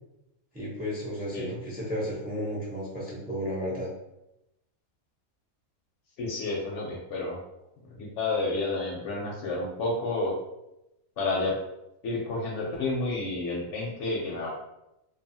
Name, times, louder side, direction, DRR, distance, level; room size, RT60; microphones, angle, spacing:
voice 1, 0.5-3.9, equal, 15° right, -6 dB, 0.3 m, -33 dB
voice 2, 6.2-7.4 7.9-10.4 11.2-11.6 12.0-14.5, left 2 dB, 65° left, -2 dB, 0.8 m, -30 dB
2.6 x 2.3 x 2.6 m, 0.89 s
omnidirectional pair, 1.5 m